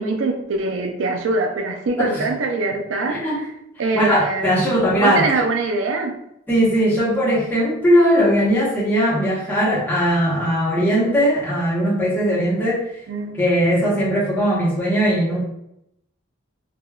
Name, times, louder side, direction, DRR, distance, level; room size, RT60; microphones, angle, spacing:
voice 1, 0.0-3.2 3.8-6.2 13.1-13.4, right 3 dB, 80° right, 4 dB, 0.4 m, -23 dB
voice 2, 3.1-3.4 3.9-5.3 6.5-12.9 13.4-15.4, equal, 10° left, -8 dB, 0.9 m, -19 dB
3.2 x 2.2 x 2.3 m, 0.80 s
head